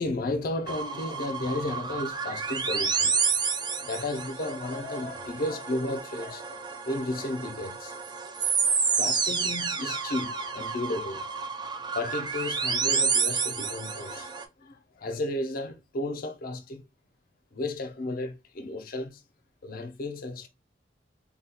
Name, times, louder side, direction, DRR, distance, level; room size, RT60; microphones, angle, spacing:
voice 1, 0.0-3.3 3.8-8.2 9.0-11.3 11.7-16.9 17.5-19.2 19.6-20.5, left 2 dB, 55° left, 0.5 m, -33 dB
sound 1, 0.7-14.4, right 5 dB, 25° right, 0.4 m, -30 dB
3.9 x 2.3 x 2.8 m
head